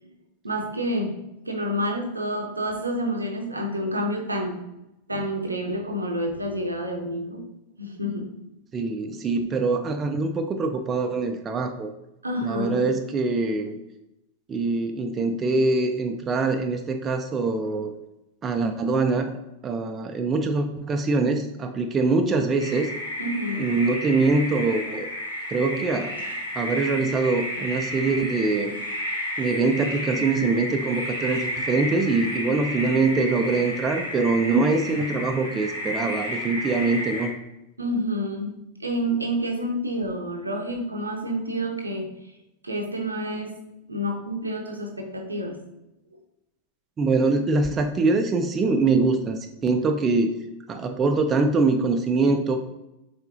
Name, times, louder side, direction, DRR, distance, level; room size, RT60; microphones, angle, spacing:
voice 1, 0.4-1.1 1.5-4.6 5.1-7.4 7.8-8.3 12.2-12.9 23.2-23.7 37.8-38.5 38.8-42.1 42.6-43.5 43.9-45.5, equal, 80° right, 2 dB, 0.7 m, -28 dB
voice 2, 8.7-11.9 12.4-13.8 14.5-17.9 18.4-19.3 19.6-22.9 23.6-25.1 25.5-26.1 26.5-28.7 29.4-37.3 47.0-50.3 50.7-52.6, right 3 dB, 25° right, 6 dB, 0.3 m, -23 dB
sound 1, 22.6-37.3, left 1 dB, 85° left, 1.1 m, -32 dB
4.6 x 3.8 x 2.6 m, 0.90 s
figure-of-eight pair, 90°, 0 cm